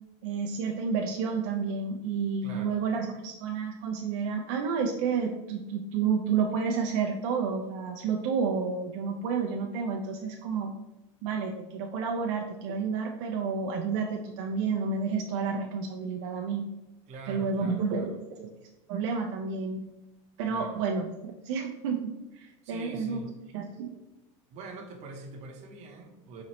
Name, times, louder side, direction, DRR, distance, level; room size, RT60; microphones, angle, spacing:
voice 1, 0.2-10.7 11.2-16.7 17.3-18.5 18.9-19.8 20.4-22.1 22.3-23.2 23.5-23.9, right 5 dB, 70° right, 2 dB, 0.4 m, -30 dB
voice 2, 2.4-2.8 17.1-18.2 20.5-20.8 22.6-23.3 24.5-26.4, right 3 dB, 45° right, 2 dB, 0.8 m, -44 dB
4.0 x 2.9 x 3.0 m, 0.99 s
supercardioid pair, 140°, 16 cm